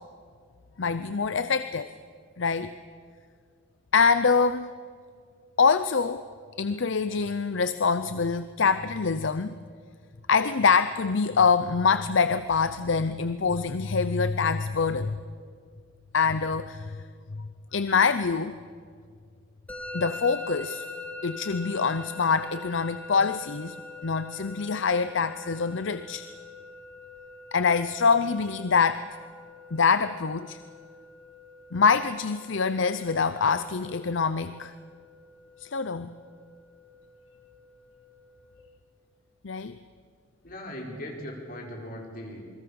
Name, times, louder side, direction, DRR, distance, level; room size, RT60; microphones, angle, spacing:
voice 1, 0.8-1.9 2.4-2.7 3.9-4.7 5.6-6.2 6.6-9.6 10.3-15.2 16.1-17.0 17.3-18.6 19.9-20.8 21.2-23.8 24.0-26.2 27.5-29.1 29.7-30.6 31.7-34.7 35.6-36.1 39.4-39.8, left 5 dB, 65° left, 12 dB, 0.6 m, -25 dB
Musical instrument, 19.7-38.6, left 3 dB, 10° left, 1.7 m, -44 dB
voice 2, 40.4-42.4, left 1 dB, 45° left, 0 dB, 4.5 m, -39 dB
28.0 x 21.5 x 7.0 m, 2.1 s
head